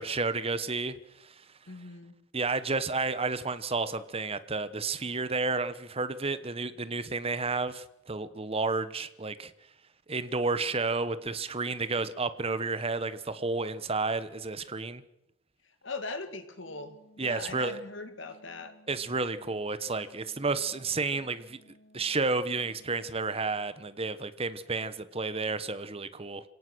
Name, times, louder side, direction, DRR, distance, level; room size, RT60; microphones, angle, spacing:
voice 1, 0.0-1.3 2.3-9.5 10.1-15.0 17.2-17.8 18.9-21.6 21.9-26.4, right 3 dB, 30° right, 13 dB, 1.1 m, -31 dB
voice 2, 1.7-2.1 15.8-18.7, left 3 dB, 65° left, 8 dB, 2.4 m, -40 dB
sound 1, 16.6-23.4, equal, 35° left, 3.7 m, -60 dB
27.0 x 18.0 x 6.3 m, 0.82 s
head